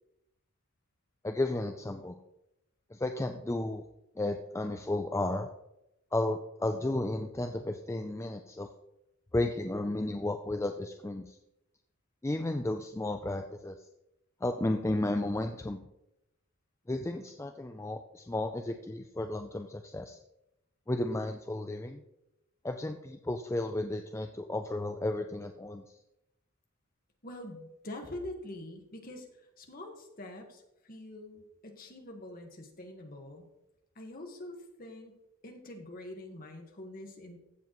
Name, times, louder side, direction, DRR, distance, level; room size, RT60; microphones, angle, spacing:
voice 1, 1.2-2.2 2.9-3.8 4.2-5.5 6.1-8.7 9.3-11.4 12.2-13.8 14.4-15.8 16.9-20.2 20.9-22.0 22.6-25.8, left 2 dB, 10° left, 6 dB, 0.3 m, -33 dB
voice 2, 27.2-33.5 33.9-35.1 35.4-37.4, left 1 dB, 40° left, 3 dB, 1.5 m, -45 dB
15.0 x 7.3 x 3.1 m, 0.88 s
head